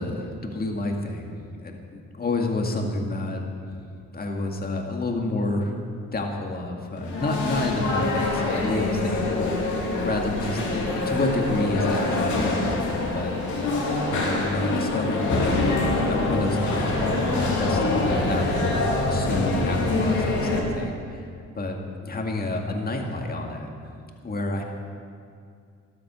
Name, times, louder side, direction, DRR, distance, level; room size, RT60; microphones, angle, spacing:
voice 1, 0.0-3.7 4.1-13.4 14.1-15.6 16.1-21.3 21.5-23.7 24.2-24.6, left 2 dB, 30° left, 1 dB, 2.0 m, -29 dB
sound 1, 7.0-20.6, left 2 dB, 80° left, 2.7 m, -25 dB
sound 2, 16.7-20.9, left 1 dB, 55° left, 4.2 m, -30 dB
13.5 x 12.0 x 6.2 m, 2.3 s
cardioid pair, 90°, 30 cm